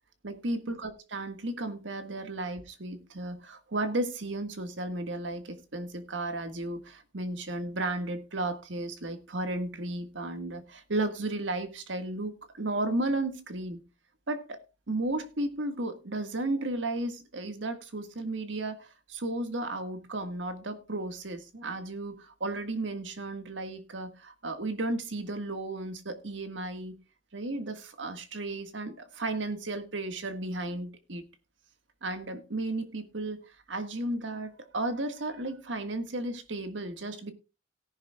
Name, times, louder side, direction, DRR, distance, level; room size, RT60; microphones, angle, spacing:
voice 1, 0.2-13.8 14.3-14.6 14.9-27.0 27.3-31.2 32.0-37.3, right 2 dB, 85° right, 1.6 m, -34 dB
17.5 x 11.0 x 2.3 m
head